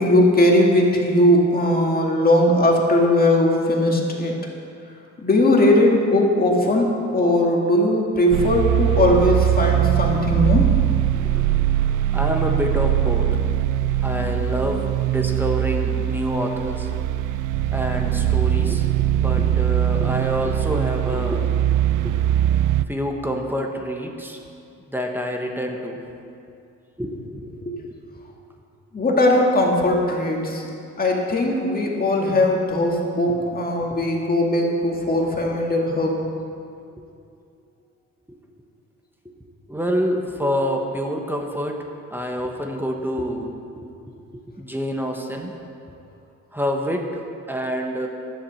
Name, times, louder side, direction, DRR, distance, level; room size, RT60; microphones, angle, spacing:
voice 1, 0.0-4.3 5.2-10.6 27.6-27.8 28.9-30.6 31.0-36.2, left 1 dB, 30° left, 0 dB, 2.1 m, -19 dB
sound 1, 8.3-22.9, right 12 dB, 80° right, 0.5 m, -21 dB
voice 2, 12.1-13.4 14.0-16.9 17.7-21.6 22.0-22.1 22.9-24.4 24.9-26.0 27.0-27.6 33.3-33.4 33.9-34.2 38.3-38.4 39.7-41.8 42.1-43.9 44.3-45.5 46.5-47.2 47.5-48.1, equal, 5° right, 1 dB, 1.2 m, -27 dB
11.0 x 7.5 x 6.4 m, 2.5 s
cardioid pair, 90°, 30 cm